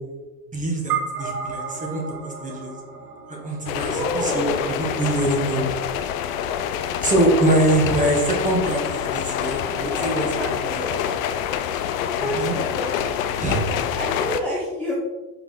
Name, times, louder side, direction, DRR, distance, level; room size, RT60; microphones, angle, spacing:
voice 1, 0.5-2.7 3.3-5.7 7.0-11.0 12.2-12.6 13.4-13.7, right 1 dB, 15° right, -1 dB, 1.7 m, -24 dB
sound 1, 0.9-5.5, right 6 dB, 75° right, 1.1 m, -33 dB
sound 2, 3.7-14.4, left 9 dB, 60° left, 0.6 m, -26 dB
voice 2, 3.8-4.6 9.8-11.0 11.9-12.9 14.0-14.9, left 1 dB, 5° left, -5 dB, 1.1 m, -29 dB
5.5 x 4.7 x 3.9 m, 1.2 s
hypercardioid pair, 85°, 46 cm